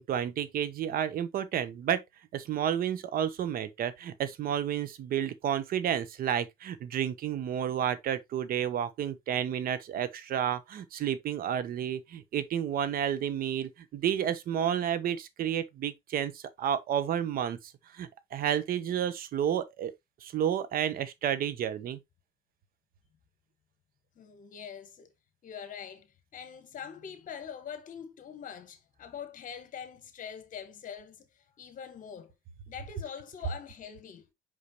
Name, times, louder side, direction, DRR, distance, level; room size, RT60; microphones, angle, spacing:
voice 1, 0.0-2.0 2.3-19.9 20.2-22.0, right 9 dB, 60° right, 1.0 m, -31 dB
voice 2, 24.1-25.1 25.4-32.3 32.7-34.2, left 7 dB, 50° left, 1.4 m, -44 dB
5.7 x 5.5 x 3.0 m
cardioid pair, 110°, 17 cm